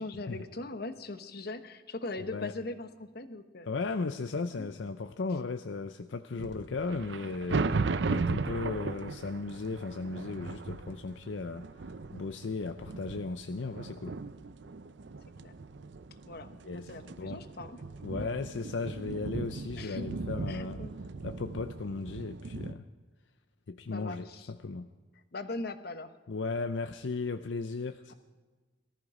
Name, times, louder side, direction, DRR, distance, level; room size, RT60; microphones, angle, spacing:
voice 1, 0.0-3.7 4.6-4.7 15.4-15.5 16.2-17.8 19.8-20.1 20.5-20.9 23.9-24.5 25.3-26.1, left 2 dB, 60° left, 9 dB, 1.1 m, -40 dB
voice 2, 2.2-2.5 3.7-14.2 16.6-16.9 17.2-17.4 18.0-20.8 21.2-22.9 23.7-24.9 26.3-28.1, left 3 dB, 80° left, 9 dB, 0.6 m, -36 dB
sound 1, 6.4-22.7, right 3 dB, 70° right, 0.6 m, -37 dB
18.5 x 13.5 x 4.9 m, 1.3 s
head